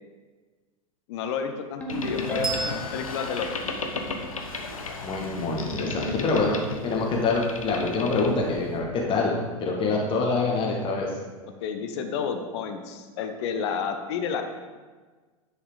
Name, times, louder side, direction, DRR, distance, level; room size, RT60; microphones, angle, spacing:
voice 1, 1.1-3.8 6.1-6.2 11.6-14.4, left 6 dB, 50° left, 7 dB, 1.1 m, -31 dB
Ringtone, 1.8-3.0, equal, 5° left, 1.4 m, -33 dB
Boat Water vehicle, 1.9-8.8, left 3 dB, 75° left, 1.1 m, -34 dB
Bell, 2.4-5.5, right 2 dB, 85° right, 1.6 m, -37 dB
voice 2, 5.0-6.6 6.8-11.1, left 3 dB, 30° left, -1 dB, 1.6 m, -25 dB
10.0 x 5.0 x 5.0 m, 1.4 s
figure-of-eight pair, 90°, 18 cm